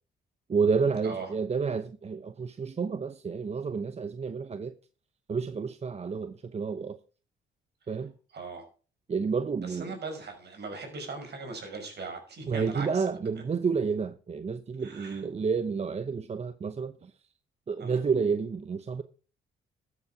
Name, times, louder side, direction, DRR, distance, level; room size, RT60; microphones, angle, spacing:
voice 1, 0.5-4.7 5.3-7.0 7.9-8.1 9.1-9.9 12.5-17.1 17.7-19.0, right 5 dB, 35° right, 0.8 m, -30 dB
voice 2, 8.3-8.6 9.6-13.1 14.8-15.2 17.8-18.0, right 4 dB, 55° right, 5.7 m, -39 dB
13.5 x 8.4 x 4.9 m
cardioid pair, 90°, 20 cm